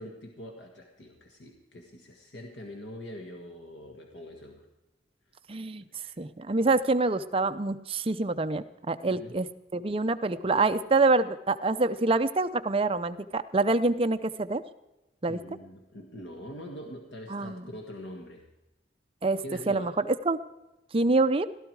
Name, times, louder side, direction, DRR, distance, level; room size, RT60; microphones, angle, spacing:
voice 1, 0.0-4.7 5.9-6.2 9.1-9.4 15.3-18.5 19.4-19.9, left 1 dB, 85° left, 2 dB, 1.6 m, -43 dB
voice 2, 5.5-5.8 6.2-14.6 15.2-15.4 17.3-17.6 19.2-19.9 20.2-20.4 20.9-21.5, right 3 dB, 30° right, 10 dB, 0.6 m, -26 dB
16.5 x 12.5 x 4.7 m, 0.99 s
head